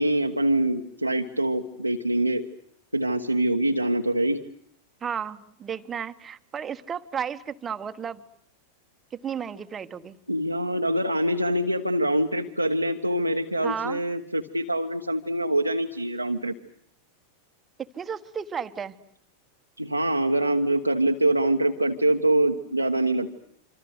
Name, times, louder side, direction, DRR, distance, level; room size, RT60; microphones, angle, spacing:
voice 1, 0.0-2.4 2.9-4.4 10.3-16.5 19.8-23.4, right 1 dB, 90° right, 1 dB, 1.2 m, -24 dB
voice 2, 5.0-8.2 9.1-10.2 13.6-14.0 17.8-19.0, right 7 dB, 20° right, 10 dB, 1.4 m, -33 dB
26.5 x 26.5 x 8.1 m, 0.69 s
figure-of-eight pair, 90°, 0 cm